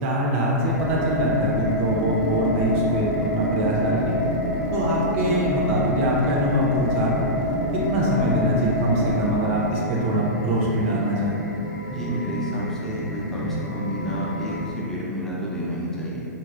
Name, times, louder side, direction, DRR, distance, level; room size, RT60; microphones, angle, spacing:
voice 1, 0.0-4.1 4.7-7.3 7.9-11.4, right 1 dB, 45° right, -3 dB, 0.6 m, -23 dB
sound 1, 0.5-14.7, right 1 dB, 85° left, 0.6 m, -33 dB
sound 2, 0.7-9.3, left 2 dB, 45° left, 0.5 m, -27 dB
voice 2, 11.9-16.2, equal, 5° left, -7 dB, 0.6 m, -30 dB
3.2 x 2.6 x 2.4 m, 2.7 s
hypercardioid pair, 115°, 9 cm